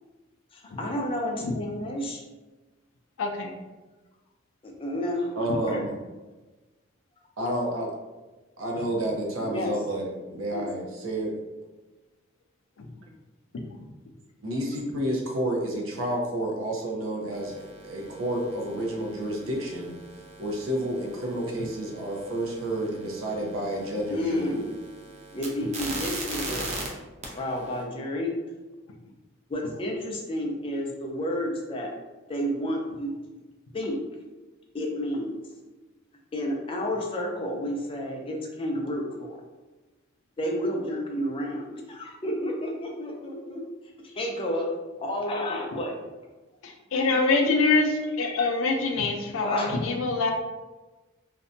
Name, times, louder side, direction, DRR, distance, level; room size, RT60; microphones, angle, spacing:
voice 1, 0.5-2.2 4.6-5.3 5.6-5.8 9.4-9.7 10.5-10.7 24.1-24.7 25.3-26.7 27.4-28.3 29.5-31.9 32.3-33.1 33.7-34.2 34.7-35.4 36.3-39.4 40.4-43.6 44.0-44.7 45.0-46.0 49.4-49.8, equal, 25° left, 1 dB, 0.4 m, -30 dB
voice 2, 3.2-3.5 13.5-13.6 46.9-50.3, left 3 dB, 80° left, 3 dB, 0.4 m, -24 dB
voice 3, 5.3-5.9 7.4-7.9 8.6-11.4 14.4-17.5 17.8-19.9 20.4-24.6, right 1 dB, 90° right, -1 dB, 0.6 m, -30 dB
sound 1, 17.3-26.9 27.2-27.8, right 2 dB, 30° right, 0.4 m, -40 dB
2.6 x 2.1 x 2.6 m, 1.2 s
head